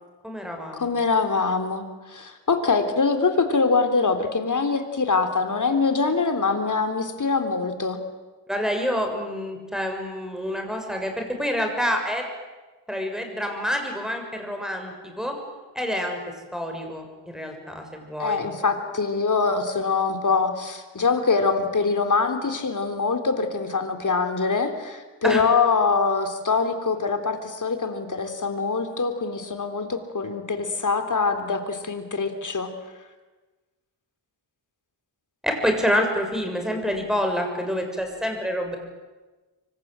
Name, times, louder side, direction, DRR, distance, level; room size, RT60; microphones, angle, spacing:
voice 1, 0.2-0.9 8.5-12.2 12.9-15.3 15.7-16.2 16.5-18.4 25.2-25.4 35.4-38.8, equal, ahead, 4 dB, 6.6 m, -27 dB
voice 2, 0.8-8.0 18.2-32.7, left 4 dB, 40° left, 7 dB, 3.6 m, -24 dB
26.0 x 24.5 x 9.0 m, 1.2 s
wide cardioid pair, 115°, 45 cm